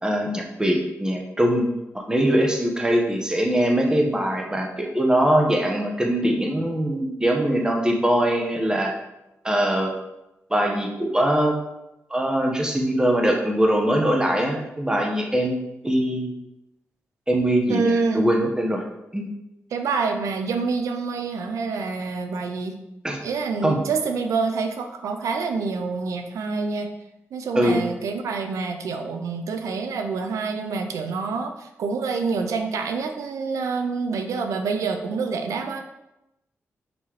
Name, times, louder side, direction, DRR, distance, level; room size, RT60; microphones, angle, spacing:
voice 1, 0.0-1.7 1.9-8.9 9.4-9.9 10.5-11.5 12.1-16.3 17.3-18.8 19.1-19.3 23.0-23.2 23.6-23.8 27.5-27.9, right 1 dB, 15° right, 1 dB, 1.4 m, -22 dB
voice 2, 17.7-18.3 19.7-22.8 23.2-26.9 27.3-35.8, right 4 dB, 90° right, 6 dB, 0.6 m, -27 dB
5.9 x 5.4 x 3.2 m, 0.91 s
cardioid pair, 60°, 5 cm